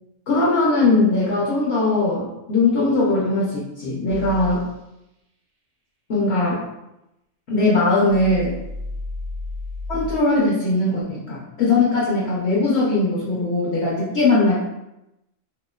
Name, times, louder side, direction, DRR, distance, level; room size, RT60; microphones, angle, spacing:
voice 1, 0.3-4.6 6.1-6.6 7.5-8.5 9.9-14.6, left 2 dB, 60° left, -6 dB, 0.8 m, -20 dB
sound 1, 4.1-4.6 8.1-10.2, left 3 dB, 75° right, 1.0 m, -32 dB
2.9 x 2.7 x 2.2 m, 0.91 s
omnidirectional pair, 1.4 m